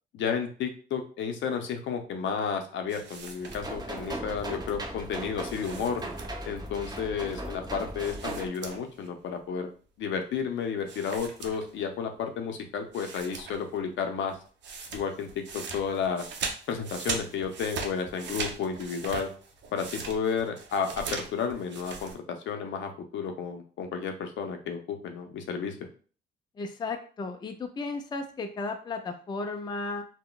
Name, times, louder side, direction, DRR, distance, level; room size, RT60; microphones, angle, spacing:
voice 1, 0.1-6.1 6.5-9.7 10.0-14.4 14.9-16.3 16.7-19.3 19.7-25.8, left 6 dB, 70° left, 5 dB, 0.6 m, -32 dB
sound 1, 2.9-4.0 5.4-6.6 8.0-9.1 9.4-9.5 10.9-12.0 12.5-12.6 12.9-13.8 14.0-22.1, right 5 dB, 65° right, 0.6 m, -39 dB
sound 2, 3.5-8.5, right 1 dB, 20° right, 0.6 m, -37 dB
voice 2, 26.6-30.1, left 3 dB, 20° left, 6 dB, 0.4 m, -34 dB
3.8 x 2.1 x 2.3 m, 0.41 s
cardioid pair, 90°, 20 cm